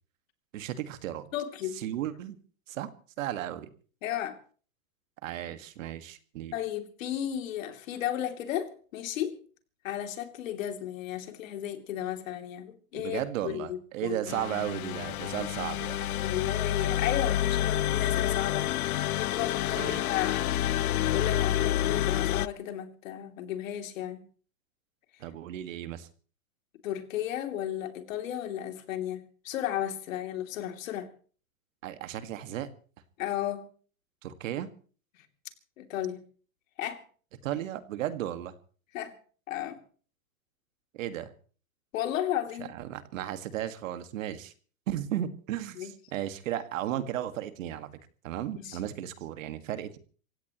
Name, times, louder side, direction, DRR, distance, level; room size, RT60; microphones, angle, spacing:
voice 1, 0.5-1.3 1.8-2.4 2.7-2.9 3.2-3.7 5.2-6.5 12.9-16.0 19.8-20.0 25.2-26.1 31.8-32.7 34.2-34.7 37.4-38.5 40.9-41.3 42.6-44.5 44.9-47.9 48.2-50.0, right 12 dB, 65° right, 10 dB, 1.9 m, -35 dB
voice 2, 1.3-1.8 4.0-4.4 6.5-9.4 9.8-14.2 16.2-18.7 19.2-20.5 20.8-24.2 26.8-31.1 33.2-33.7 35.8-36.2 36.8-37.0 38.9-39.2 39.5-39.8 41.9-42.7 45.8-45.9 48.6-48.8, left 11 dB, 65° left, 6 dB, 3.1 m, -34 dB
sound 1, 14.3-22.5, left 12 dB, 80° left, 0.7 m, -28 dB
27.5 x 16.5 x 3.1 m, 0.42 s
hypercardioid pair, 140°, 43 cm